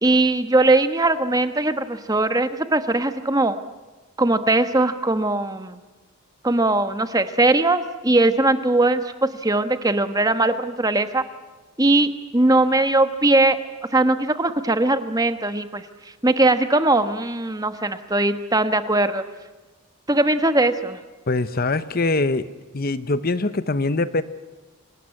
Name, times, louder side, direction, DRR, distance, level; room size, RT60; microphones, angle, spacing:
voice 1, 0.0-3.6 4.2-5.8 6.4-11.2 11.8-13.6 13.9-15.8 16.2-19.2 20.1-21.0, right 2 dB, 15° right, 9 dB, 1.2 m, -20 dB
voice 2, 21.3-22.5 22.7-24.2, left 2 dB, 45° left, 13 dB, 0.9 m, -23 dB
26.5 x 19.0 x 9.7 m, 1.2 s
head